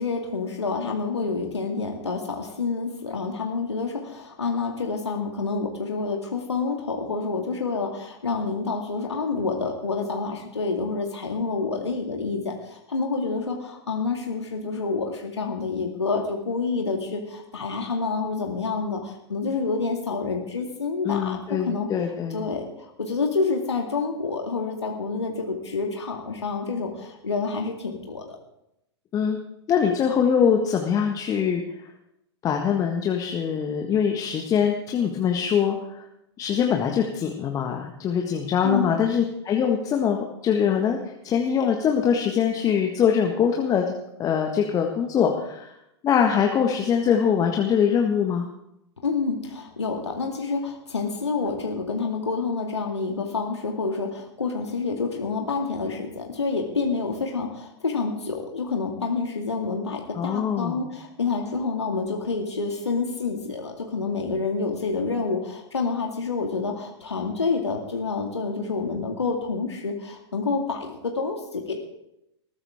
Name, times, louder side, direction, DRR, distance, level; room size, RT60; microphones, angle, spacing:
voice 1, 0.0-21.9 22.3-22.7 23.0-28.4 38.6-39.0 49.0-71.8, left 4 dB, 75° left, 1 dB, 2.3 m, -28 dB
voice 2, 21.0-22.4 29.1-29.4 29.7-31.6 32.4-35.8 36.4-41.0 41.2-45.7 46.0-48.5 60.1-60.8, left 7 dB, 25° left, 2 dB, 1.6 m, -23 dB
20.5 x 14.5 x 3.7 m, 0.82 s
figure-of-eight pair, 100°, 15 cm